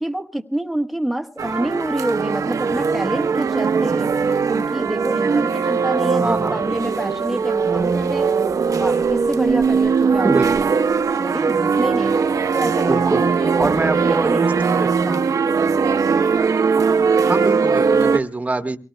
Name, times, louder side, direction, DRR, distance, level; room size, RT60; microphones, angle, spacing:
voice 1, 0.0-4.1 4.5-8.3 8.7-10.3 10.6-10.7 11.2-12.2 12.5-15.2, right 1 dB, ahead, 6 dB, 1.1 m, -27 dB
sound 1, 1.4-18.2, right 5 dB, 80° right, 0.9 m, -20 dB
voice 2, 6.2-6.6 10.2-10.5 12.9-13.2 13.6-14.5 14.8-14.9 16.7-16.8 17.2-18.8, right 2 dB, 25° right, 8 dB, 1.2 m, -24 dB
24.5 x 17.5 x 2.2 m, 0.33 s
wide cardioid pair, 125°, 6 cm